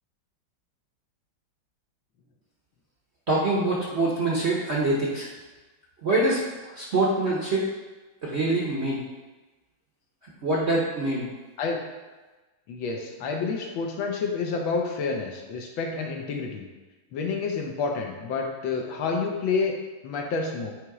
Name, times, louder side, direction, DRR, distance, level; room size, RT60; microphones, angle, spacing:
voice 1, 3.3-5.3 6.0-6.4 6.7-7.7 8.2-9.0 10.4-11.3, right 2 dB, 50° right, -4 dB, 0.8 m, -24 dB
voice 2, 12.7-16.7 17.1-19.8 20.0-20.7, left 4 dB, 80° left, 2 dB, 1.6 m, -29 dB
8.3 x 3.0 x 4.8 m, 1.2 s
omnidirectional pair, 2.2 m